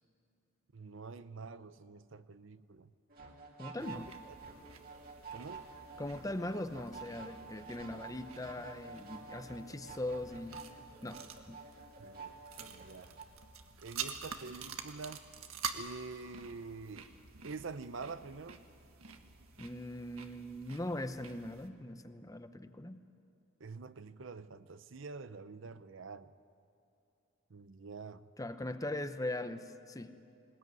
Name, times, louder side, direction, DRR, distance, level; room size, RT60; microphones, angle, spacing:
voice 1, 0.7-2.9 3.8-4.1 5.3-5.7 12.0-13.2 13.8-15.2 15.7-17.1 17.4-18.6 23.6-26.3 27.5-28.2, right 4 dB, 60° right, 0.7 m, -46 dB
sound 1, 3.1-13.2, right 4 dB, 45° right, 2.6 m, -50 dB
voice 2, 3.6-4.1 6.0-10.6 11.0-11.6 19.6-23.0 28.4-30.2, left 1 dB, 15° left, 0.8 m, -40 dB
sound 2, 3.8-21.7, right 6 dB, 90° right, 1.6 m, -48 dB
20.5 x 19.5 x 9.5 m
head